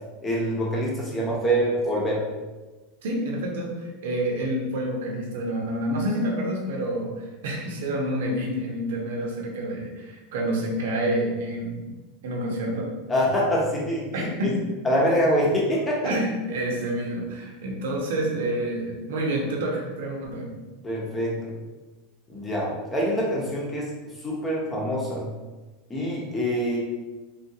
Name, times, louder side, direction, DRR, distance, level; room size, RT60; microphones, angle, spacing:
voice 1, 0.2-2.2 13.1-14.5 14.8-16.1 20.8-21.5 22.3-23.9 24.2-25.3 25.9-26.8, equal, 15° left, -4 dB, 0.8 m, -25 dB
voice 2, 3.0-11.8 12.2-12.9 14.1-14.6 16.0-20.5, right 1 dB, 85° right, -1 dB, 0.9 m, -28 dB
3.6 x 2.4 x 2.8 m, 1.2 s
supercardioid pair, 145°, 0 cm